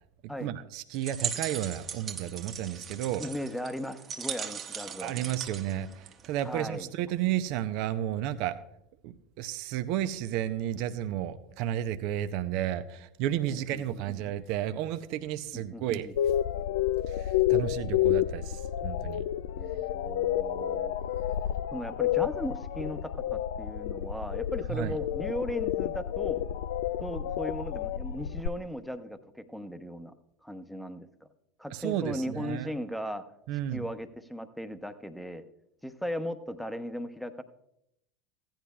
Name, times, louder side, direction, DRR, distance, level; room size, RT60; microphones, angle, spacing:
voice 1, 0.4-3.2 5.0-8.6 9.0-16.1 17.1-19.2 24.7-25.0 31.7-32.7 33.5-33.9, right 11 dB, 60° right, 10 dB, 0.6 m, -32 dB
sound 1, 0.9-6.6, right 7 dB, 35° right, 1.1 m, -38 dB
voice 2, 3.2-5.2 6.4-6.9 13.5-14.1 15.5-16.1 19.6-21.0 21.7-26.4 27.0-30.1 30.4-31.3 31.6-33.2 33.7-35.4 35.8-37.4, equal, ahead, 9 dB, 0.9 m, -37 dB
sound 2, 16.2-28.5, left 12 dB, 70° left, 0.3 m, -30 dB
15.5 x 10.5 x 2.3 m, 0.78 s
hypercardioid pair, 80°, 0 cm